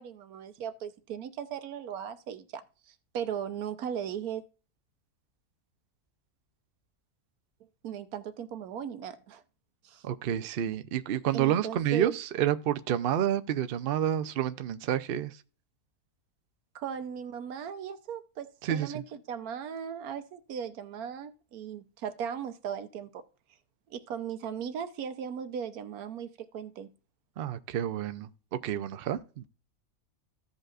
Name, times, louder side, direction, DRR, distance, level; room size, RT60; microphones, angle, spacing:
voice 1, 0.0-4.4 7.8-9.4 9.8-10.0 11.3-12.1 16.7-23.2 23.9-26.9, right 8 dB, 90° right, 1.3 m, -37 dB
voice 2, 10.0-15.3 18.6-18.9 27.4-28.3 28.6-29.4, right 10 dB, 60° right, 0.6 m, -29 dB
15.5 x 5.3 x 2.4 m
omnidirectional pair, 1.6 m